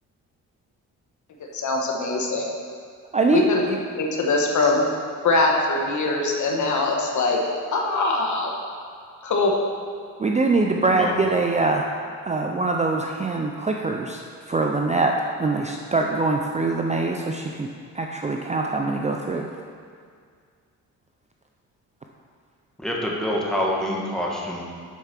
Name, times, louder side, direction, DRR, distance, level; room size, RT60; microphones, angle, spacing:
voice 1, 1.5-2.4 3.3-3.6 3.9-4.8 5.2-7.4 7.7-8.5 9.2-9.5, left 3 dB, 55° left, 0 dB, 1.3 m, -22 dB
voice 2, 3.1-3.8 10.2-11.9 12.3-14.2 14.5-17.7 17.9-19.5, right 3 dB, 20° right, 1 dB, 0.5 m, -23 dB
voice 3, 22.8-24.6, equal, ahead, -3 dB, 1.5 m, -26 dB
8.2 x 4.7 x 5.8 m, 2.1 s
cardioid pair, 95°, 35 cm